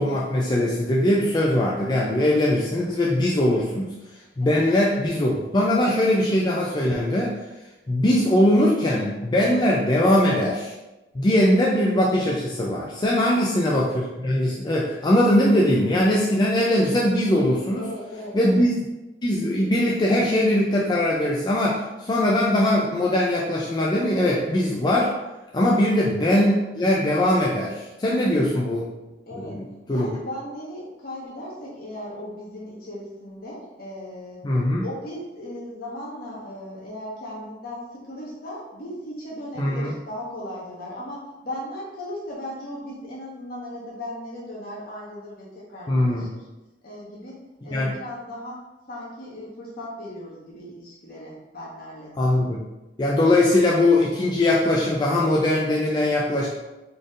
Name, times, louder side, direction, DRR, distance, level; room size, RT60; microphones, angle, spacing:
voice 1, 0.0-3.9 4.4-7.3 7.9-10.7 11.1-17.8 18.3-18.7 19.2-25.1 25.5-28.9 29.4-30.1 34.4-34.8 39.6-39.9 45.9-46.3 47.7-48.0 52.2-52.6 53.0-56.5, left 1 dB, 25° left, -4 dB, 0.4 m, -21 dB
voice 2, 13.2-13.5 17.8-18.6 25.8-26.1 29.3-29.6 29.9-34.4 34.8-46.4 46.8-52.1, left 1 dB, 55° left, -5 dB, 1.2 m, -37 dB
4.1 x 3.3 x 2.5 m, 1.0 s
head